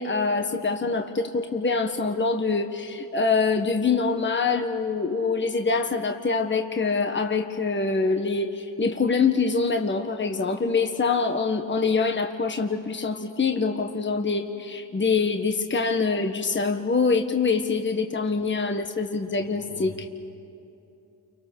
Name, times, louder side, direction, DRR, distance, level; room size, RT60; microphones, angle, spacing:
voice 1, 0.0-20.1, left 4 dB, 30° left, 5 dB, 1.5 m, -25 dB
voice 2, 19.3-20.1, left 1 dB, 70° left, 2 dB, 2.8 m, -44 dB
30.0 x 24.5 x 6.5 m, 2.8 s
cardioid pair, 60°, 40 cm